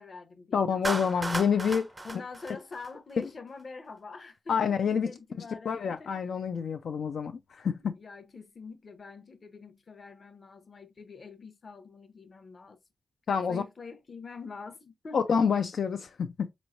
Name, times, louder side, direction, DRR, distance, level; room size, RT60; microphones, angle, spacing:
voice 1, 0.0-0.8 2.0-6.1 7.9-12.8 13.5-15.2, left 4 dB, 50° left, 0.7 m, -45 dB
voice 2, 0.5-1.9 3.2-3.3 4.5-5.1 5.7-8.0 13.3-13.6 15.1-16.5, left 6 dB, 85° left, 0.3 m, -27 dB
Clapping, 0.8-3.2, right 2 dB, 20° right, 0.4 m, -35 dB
4.2 x 3.0 x 2.4 m
wide cardioid pair, 120°, 0 cm